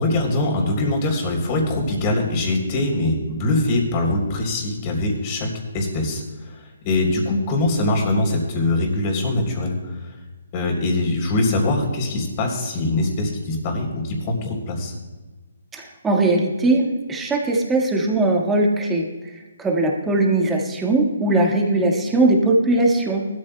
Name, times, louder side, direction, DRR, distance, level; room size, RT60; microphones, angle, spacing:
voice 1, 0.0-6.5 6.8-10.0 10.5-14.9, left 2 dB, 30° left, 1 dB, 3.3 m, -22 dB
voice 2, 15.7-23.3, right 2 dB, 10° right, -1 dB, 1.6 m, -20 dB
19.0 x 13.0 x 2.2 m, 1.2 s
hypercardioid pair, 160°, 0 cm